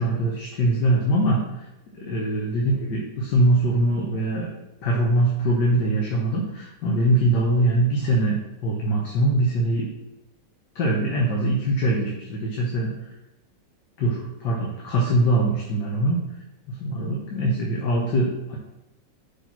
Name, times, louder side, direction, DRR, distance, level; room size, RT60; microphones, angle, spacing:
voice 1, 0.0-1.4 2.0-4.5 4.8-8.3 8.6-9.9 10.8-12.9 14.0-16.2 16.8-18.6, right 1 dB, 70° left, -2 dB, 1.7 m, -22 dB
6.2 x 4.3 x 5.8 m, 0.94 s
omnidirectional pair, 1.9 m